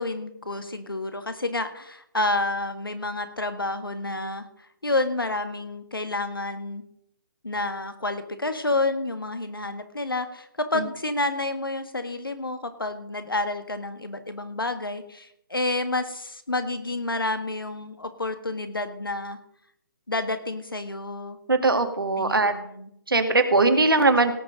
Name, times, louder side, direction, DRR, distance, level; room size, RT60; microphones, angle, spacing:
voice 1, 0.0-4.4 4.8-6.8 7.4-19.4 20.1-21.4 22.2-22.9, left 2 dB, 90° left, 9 dB, 1.7 m, -29 dB
voice 2, 21.5-22.5 23.1-24.3, right 3 dB, 85° right, 7 dB, 2.0 m, -20 dB
17.5 x 6.7 x 5.1 m, 0.73 s
figure-of-eight pair, 140°, 11 cm